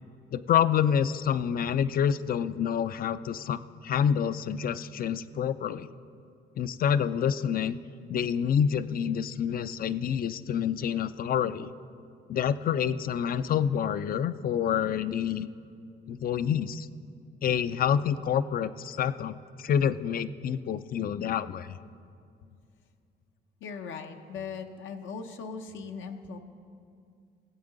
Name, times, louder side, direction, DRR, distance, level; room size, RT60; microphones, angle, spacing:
voice 1, 0.3-5.9 6.6-7.8 8.1-11.7 12.3-15.5 16.1-16.9 17.4-21.8, left 8 dB, 50° left, 15 dB, 0.4 m, -27 dB
voice 2, 23.6-26.4, left 5 dB, 75° left, 5 dB, 0.7 m, -39 dB
16.5 x 8.0 x 3.9 m, 2.4 s
cardioid pair, 90°, 20 cm